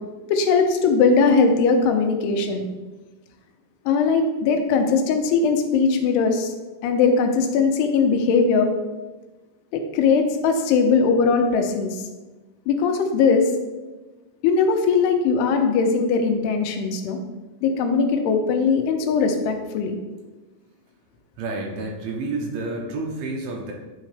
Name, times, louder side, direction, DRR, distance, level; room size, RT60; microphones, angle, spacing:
voice 1, 0.3-2.6 3.9-6.5 6.8-8.7 9.7-12.1 12.7-13.5 14.4-17.2 17.6-20.0, left 5 dB, 85° left, 5 dB, 2.7 m, -20 dB
voice 2, 21.4-23.7, right 2 dB, 80° right, 0 dB, 2.6 m, -29 dB
9.7 x 3.7 x 3.3 m, 1.2 s
omnidirectional pair, 4.6 m